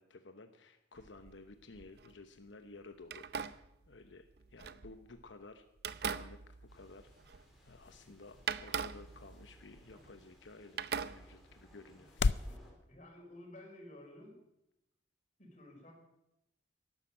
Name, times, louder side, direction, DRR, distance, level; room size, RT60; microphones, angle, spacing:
voice 1, 0.0-3.6 3.9-5.6 6.1-12.1, left 3 dB, 90° left, 8 dB, 1.0 m, -54 dB
sound 1, 1.0-2.2 3.0-5.3 5.8-7.7 7.9-8.0 8.5-10.5 10.8-11.7, right 6 dB, 60° right, 0.6 m, -42 dB
sound 2, 6.3-12.6, left 4 dB, 70° left, 0.5 m, -41 dB
sound 3, 6.7-12.7, equal, ahead, 3.8 m, -64 dB
voice 2, 12.5-14.4 15.4-15.9, left 1 dB, 40° left, 0 dB, 5.2 m, -53 dB
12.5 x 11.5 x 8.8 m, 0.84 s
head